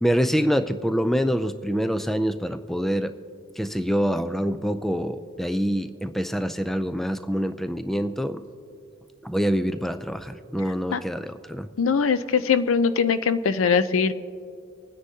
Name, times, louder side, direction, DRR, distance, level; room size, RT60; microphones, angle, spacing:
voice 1, 0.0-3.1 3.6-8.4 9.2-11.7, equal, ahead, 9 dB, 0.3 m, -25 dB
voice 2, 11.8-14.1, left 6 dB, 75° left, 12 dB, 0.5 m, -21 dB
25.5 x 9.8 x 2.8 m, 2.4 s
head